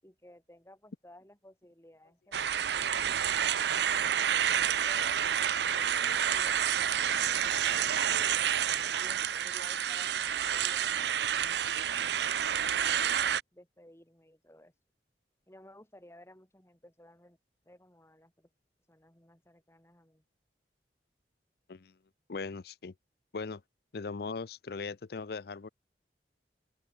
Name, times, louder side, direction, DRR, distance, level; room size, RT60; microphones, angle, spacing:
voice 1, 0.0-3.3 4.0-8.5 9.0-12.8 13.5-14.7 15.5-17.4 17.6-18.5 18.9-20.2, left 1 dB, 15° left, 6.4 m, -57 dB
sound 1, 2.3-13.4, right 9 dB, 75° right, 0.6 m, -29 dB
voice 2, 22.3-22.9 23.3-23.6 23.9-25.7, left 4 dB, 60° left, 0.5 m, -39 dB
open air
head